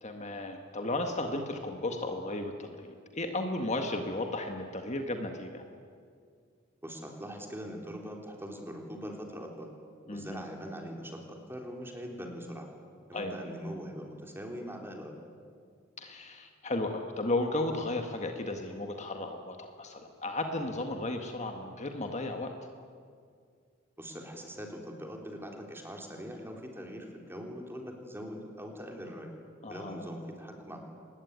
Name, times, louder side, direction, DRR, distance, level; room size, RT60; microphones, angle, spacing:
voice 1, 0.0-5.6 10.1-10.4 13.1-13.4 16.0-22.5 29.6-30.0, left 2 dB, 35° left, 4 dB, 1.8 m, -34 dB
voice 2, 6.8-9.7 10.1-12.7 13.1-15.2 24.0-29.3 29.7-30.8, equal, 10° right, 1 dB, 3.8 m, -42 dB
25.0 x 20.5 x 9.7 m, 2.1 s
head